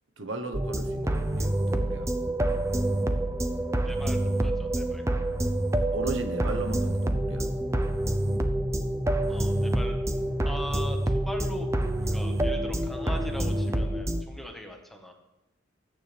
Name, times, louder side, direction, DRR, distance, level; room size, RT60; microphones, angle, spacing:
voice 1, 0.2-2.1 5.9-7.5, right 2 dB, 75° right, 7 dB, 1.2 m, -36 dB
sound 1, 0.5-14.2, right 1 dB, 15° right, 0.8 m, -27 dB
voice 2, 3.8-5.0 9.3-10.0 10.4-11.7 12.1-15.1, equal, ahead, 2 dB, 1.5 m, -40 dB
20.5 x 9.5 x 3.5 m, 0.95 s
head